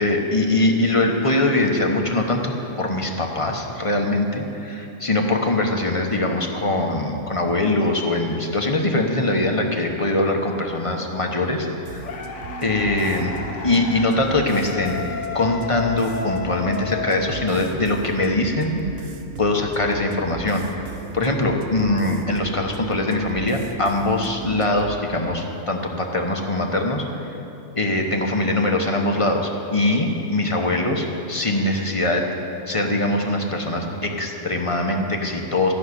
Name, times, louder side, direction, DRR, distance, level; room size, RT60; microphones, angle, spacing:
voice 1, 0.0-12.1 12.6-13.3 13.6-15.0 15.3-27.4 27.7-32.3 32.7-35.7, left 2 dB, 25° left, 2 dB, 1.0 m, -22 dB
sound 1, 11.9-25.0, right 6 dB, 55° right, 0.8 m, -38 dB
sound 2, 12.0-18.1, left 5 dB, 60° left, 1.3 m, -33 dB
14.0 x 6.4 x 9.7 m, 2.9 s
omnidirectional pair, 1.5 m